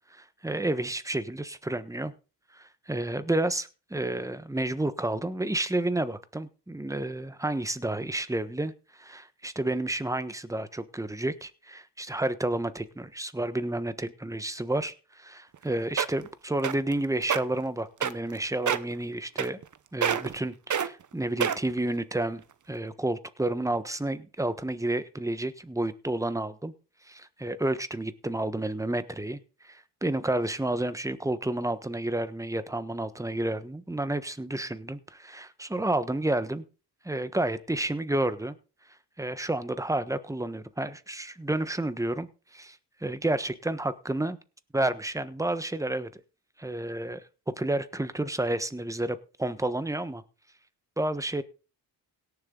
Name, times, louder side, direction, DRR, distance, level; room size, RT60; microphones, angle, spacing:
voice 1, 0.2-2.1 2.5-8.7 9.0-19.6 19.9-22.4 22.7-26.7 27.1-36.6 37.0-38.5 39.2-42.3 42.5-42.8 43.0-44.4 44.7-46.2 46.6-47.2 47.6-50.2 51.0-51.4, right 1 dB, 5° right, 13 dB, 1.3 m, -30 dB
sound 1, 15.5-15.6 16.0-16.3 16.6-16.9 17.2-17.4 18.0-18.4 18.7-18.9 19.4-19.7 20.0-20.4 20.7-20.9 21.4-21.8 22.4-22.5, right 8 dB, 40° right, 1.0 m, -26 dB
17.5 x 7.1 x 3.9 m, 0.34 s
supercardioid pair, 65°, 44 cm